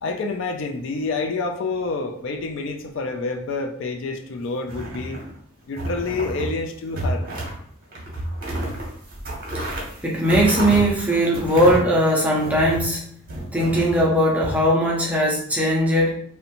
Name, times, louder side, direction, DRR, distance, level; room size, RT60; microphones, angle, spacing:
voice 1, 0.0-5.2 5.7-7.2, left 3 dB, 60° left, 4 dB, 0.3 m, -28 dB
sound 1, 4.6-5.4 5.8-6.5 6.9-7.6 7.9-12.9 13.3-14.5, right 1 dB, 45° right, 0.7 m, -30 dB
voice 2, 9.6-13.1 13.5-16.2, equal, 5° right, -3 dB, 0.4 m, -19 dB
2.5 x 2.1 x 2.8 m, 0.63 s
head